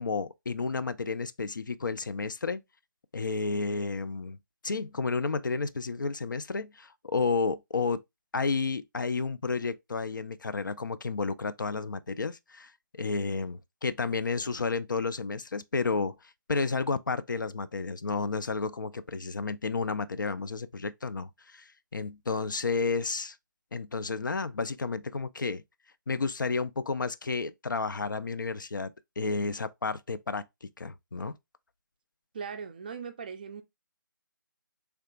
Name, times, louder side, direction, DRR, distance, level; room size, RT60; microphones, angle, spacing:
voice 1, 0.0-2.6 3.1-4.4 4.6-8.0 8.3-16.1 16.5-23.4 23.7-25.6 26.1-30.4 30.8-31.3, left 4 dB, 70° left, 0.4 m, -31 dB
voice 2, 32.3-33.6, right 6 dB, 25° right, 0.4 m, -39 dB
3.4 x 2.8 x 2.3 m
figure-of-eight pair, 150°, 11 cm